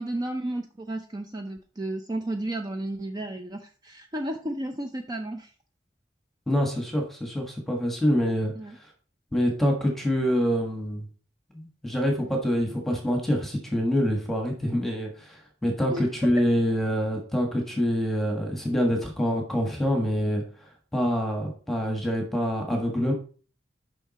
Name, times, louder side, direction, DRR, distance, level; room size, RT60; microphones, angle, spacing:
voice 1, 0.0-5.5 8.6-8.8 15.9-16.1, right 1 dB, 20° right, 5 dB, 0.6 m, -33 dB
voice 2, 6.5-8.5 9.3-11.1 11.5-20.4 20.9-23.1, equal, ahead, 1 dB, 1.4 m, -26 dB
7.1 x 5.6 x 4.2 m, 0.41 s
head